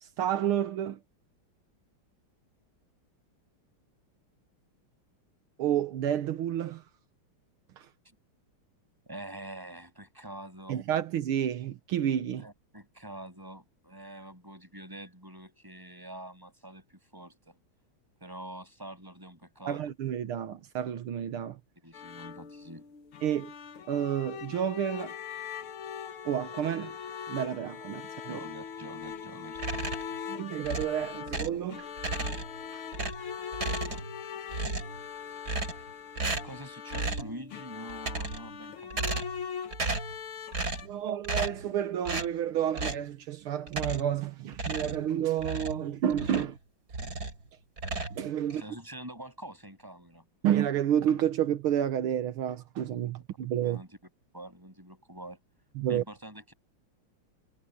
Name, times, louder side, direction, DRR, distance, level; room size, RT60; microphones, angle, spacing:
voice 1, 0.0-1.0 5.6-6.8 7.8-7.9 10.7-12.4 19.7-21.6 23.2-23.5 23.9-25.2 26.3-27.0 27.3-28.4 30.3-32.3 32.7-32.8 33.9-34.0 40.8-46.6 48.1-48.6 50.4-53.8 55.8-56.0, right 10 dB, 80° right, 1.9 m, -30 dB
voice 2, 9.1-10.8 12.4-17.6 18.2-19.9 21.8-22.9 28.3-30.0 36.1-39.3 48.4-50.2 53.6-53.9 54.3-55.4 55.9-56.5, right 1 dB, 10° right, 7.3 m, -45 dB
sound 1, 21.9-40.9, left 7 dB, 75° left, 2.2 m, -41 dB
sound 2, 29.5-30.2 30.6-31.6 32.0-32.6 32.9-34.2 34.5-35.0 35.4-35.9 36.2-36.6 36.9-37.3 37.9-38.5 38.9-39.4 39.7-40.2 40.5-40.9 41.2-41.7 42.0-42.3 42.7-43.1 43.7-44.2 44.5-46.6 46.9-47.4 47.8-48.6, right 3 dB, 45° right, 4.4 m, -34 dB
omnidirectional pair, 2.4 m